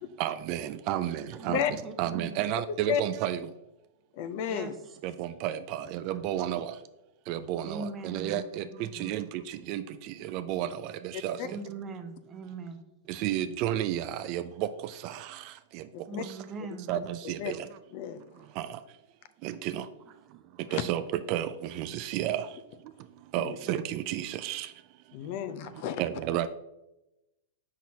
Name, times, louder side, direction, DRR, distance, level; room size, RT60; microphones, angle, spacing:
voice 1, 0.2-1.6 2.0-3.4 5.2-6.7 7.3-8.6 9.0-9.2 9.7-9.8 10.3-10.7 11.2-11.4 13.2-14.4 16.9-17.6 19.4-19.8 20.7-21.0 21.3-21.5 21.8-22.4 23.3-24.7 26.0-26.5, right 12 dB, 45° right, 12 dB, 0.3 m, -31 dB
voice 2, 1.3-2.4 4.5-5.0 7.6-8.7 8.9-9.1 11.4-12.8 16.1-16.9 20.3-20.4, right 3 dB, 25° right, 7 dB, 0.7 m, -41 dB
voice 3, 4.1-4.7 11.1-11.5 16.1-16.2 17.4-17.5 17.9-18.2 20.7-20.8 23.4-23.6 25.1-26.0, left 9 dB, 50° left, 12 dB, 0.4 m, -32 dB
6.0 x 5.7 x 2.8 m, 0.94 s
hypercardioid pair, 135°, 0 cm